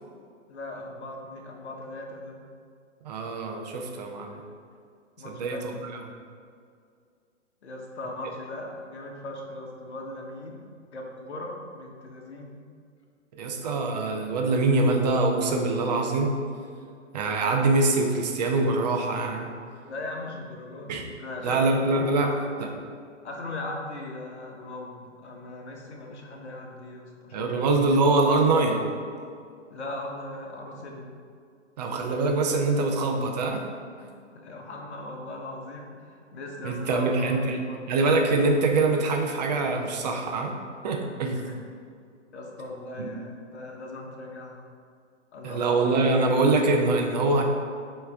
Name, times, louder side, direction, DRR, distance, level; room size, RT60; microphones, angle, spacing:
voice 1, 0.5-2.4 5.2-5.6 7.6-10.6 10.9-12.6 19.8-21.6 22.0-22.6 23.2-27.5 29.7-31.2 34.0-37.1 37.6-37.8 41.3-41.6 42.3-44.7 45.3-45.6, left 2 dB, 60° left, 0 dB, 1.3 m, -39 dB
voice 2, 3.0-4.4 5.2-5.6 13.3-16.3 17.1-19.5 20.9-21.0 21.4-22.3 27.3-28.8 31.8-33.6 36.6-37.6 37.9-40.5 40.8-41.5 43.0-43.1 45.4-47.4, right 3 dB, 35° right, 2 dB, 0.7 m, -24 dB
8.0 x 3.2 x 3.6 m, 2.2 s
hypercardioid pair, 145°, 37 cm